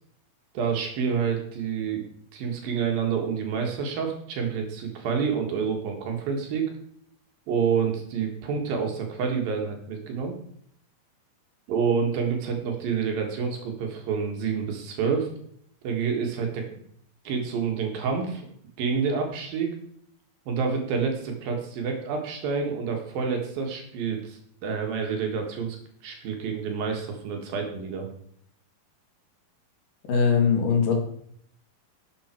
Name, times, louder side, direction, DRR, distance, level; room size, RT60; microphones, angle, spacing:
voice 1, 0.6-2.0 2.3-6.7 7.5-10.4 11.7-15.3 15.8-16.7 17.3-18.5 18.8-19.8 20.5-25.8 26.0-28.1, right 6 dB, 70° right, 3 dB, 3.4 m, -28 dB
voice 2, 30.1-30.9, left 6 dB, 60° left, 2 dB, 3.5 m, -21 dB
12.0 x 8.0 x 4.5 m, 0.66 s
omnidirectional pair, 4.5 m